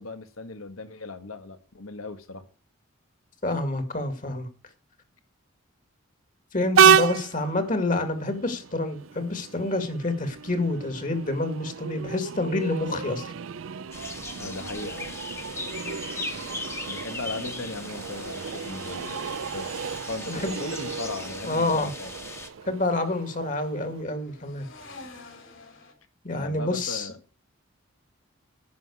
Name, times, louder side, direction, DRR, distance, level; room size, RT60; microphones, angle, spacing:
voice 1, 0.0-2.5 14.4-15.2 16.2-16.3 16.9-22.1 26.4-27.2, left 3 dB, 90° left, 1.6 m, -37 dB
voice 2, 3.4-4.5 6.5-13.3 20.3-20.6 21.4-21.9 22.7-24.7 26.2-27.1, left 2 dB, 40° left, 2.0 m, -28 dB
Train, 6.7-24.0, right 7 dB, 70° right, 0.5 m, -29 dB
sound 1, 13.9-22.5, left 2 dB, 15° left, 1.2 m, -38 dB
sound 2, 15.6-25.9, left 2 dB, 65° left, 3.8 m, -50 dB
10.5 x 5.9 x 8.4 m
head